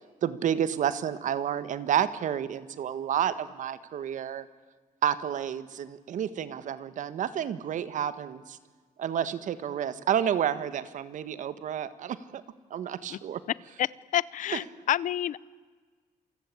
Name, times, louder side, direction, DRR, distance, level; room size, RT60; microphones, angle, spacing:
voice 1, 0.2-4.5 5.0-8.6 9.0-12.4 12.7-13.4, right 9 dB, 60° right, 14 dB, 1.7 m, -30 dB
voice 2, 13.8-15.4, left 11 dB, 65° left, 21 dB, 0.7 m, -29 dB
28.5 x 23.5 x 8.7 m, 1.4 s
cardioid pair, 135°, 14 cm